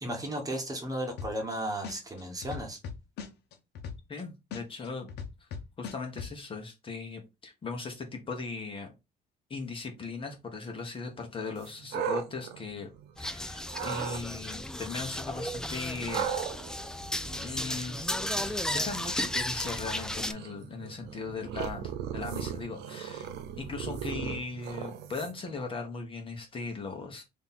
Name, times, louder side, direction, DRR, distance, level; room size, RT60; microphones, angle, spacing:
voice 1, 0.0-2.8, right 1 dB, 20° right, 1.3 m, -34 dB
sound 1, 1.2-1.5 1.8-4.2 4.5-6.3, left 6 dB, 75° left, 1.0 m, -39 dB
voice 2, 4.1-5.1 5.4-5.5 5.8-8.9 9.5-12.9 13.2-16.3 17.4-18.1 18.4-23.3 23.6-27.2, left 4 dB, 30° left, 1.2 m, -38 dB
sound 2, 11.6-13.3 13.7-14.2 16.1-25.5, right 8 dB, 80° right, 0.5 m, -38 dB
sound 3, 13.2-20.3, left 1 dB, 5° left, 0.4 m, -34 dB
3.4 x 2.8 x 4.1 m
cardioid pair, 110°, 17 cm